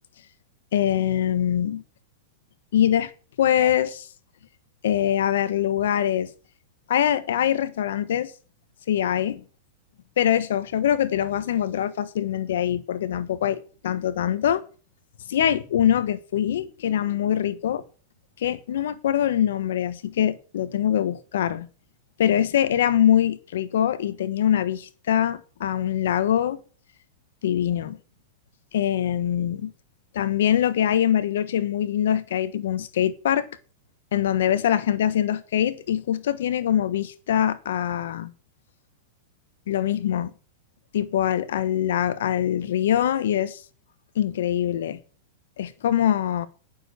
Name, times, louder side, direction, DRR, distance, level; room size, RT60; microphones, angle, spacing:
voice 1, 0.7-1.8 2.7-3.1 3.4-4.1 4.8-6.3 6.9-8.3 8.9-9.4 10.2-14.6 15.3-17.8 18.4-21.7 22.2-26.6 27.4-28.0 28.7-29.7 30.1-33.5 34.1-38.3 39.7-40.3 40.9-43.6 44.1-45.0 45.6-46.5, left 10 dB, 75° left, 1.2 m, -23 dB
9.2 x 7.0 x 8.1 m
hypercardioid pair, 125°, 0 cm